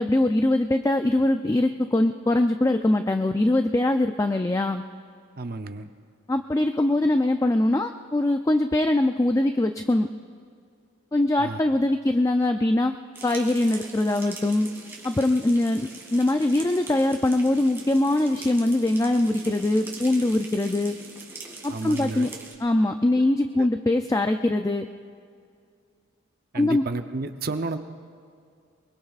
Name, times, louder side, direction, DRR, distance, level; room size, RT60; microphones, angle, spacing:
voice 1, 0.0-4.8 6.3-10.1 11.1-12.9 13.2-14.7 15.0-21.0 21.6-22.3 22.6-24.9 26.5-26.8, left 1 dB, 15° left, 7 dB, 0.3 m, -22 dB
voice 2, 5.4-5.9 11.4-11.6 21.7-22.3 23.6-23.7 26.5-27.8, right 3 dB, 50° right, 8 dB, 0.7 m, -31 dB
sound 1, 13.2-22.5, right 3 dB, 10° right, 2.2 m, -42 dB
23.5 x 23.0 x 2.4 m, 2.3 s
head